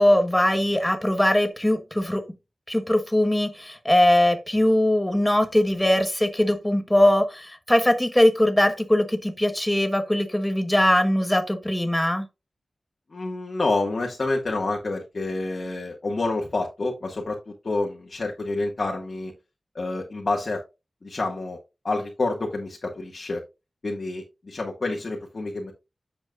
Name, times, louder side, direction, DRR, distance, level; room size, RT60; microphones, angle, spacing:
voice 1, 0.0-2.2 2.7-12.3, left 1 dB, 10° left, 1.2 m, -21 dB
voice 2, 13.1-19.3 19.7-20.6 21.0-21.6 21.8-23.4 23.8-25.7, left 2 dB, 50° left, 1.7 m, -28 dB
9.4 x 7.2 x 2.5 m
wide cardioid pair, 120°, 0 cm